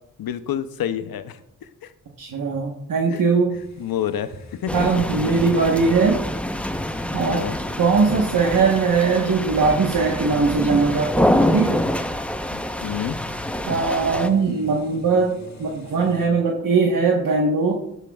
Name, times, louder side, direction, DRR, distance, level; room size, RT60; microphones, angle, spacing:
voice 1, 0.2-1.9 3.1-3.2 3.8-5.3 7.2-7.6 12.5-13.2, left 10 dB, 80° left, 12 dB, 0.7 m, -29 dB
voice 2, 2.2-3.5 4.7-6.2 7.1-7.4 7.8-11.9 13.7-15.3 15.6-17.7, right 4 dB, 65° right, 0 dB, 1.4 m, -20 dB
sound 1, 3.5-16.3, left 3 dB, 50° left, 1.4 m, -44 dB
sound 2, 4.7-14.3, left 1 dB, 5° left, 0.9 m, -26 dB
12.0 x 11.5 x 2.4 m, 0.82 s
cardioid pair, 45°, 35 cm